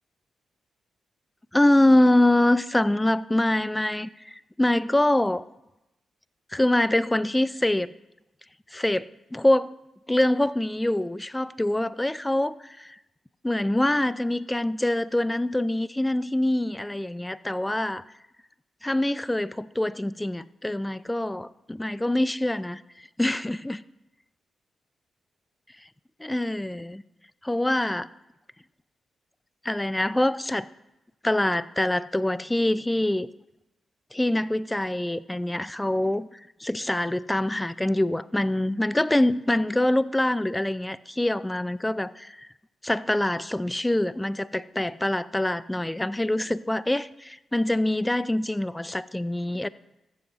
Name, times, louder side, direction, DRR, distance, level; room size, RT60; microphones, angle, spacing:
voice 1, 1.5-5.4 6.5-7.9 8.7-9.7 10.1-13.0 13.4-18.0 18.8-22.8 23.2-23.8 26.2-27.0 27.4-28.1 29.6-30.7 31.2-33.3 34.1-42.5 42.8-49.7, left 1 dB, 15° left, 0.5 m, -25 dB
14.5 x 7.9 x 4.1 m
hypercardioid pair, 40°, 0 cm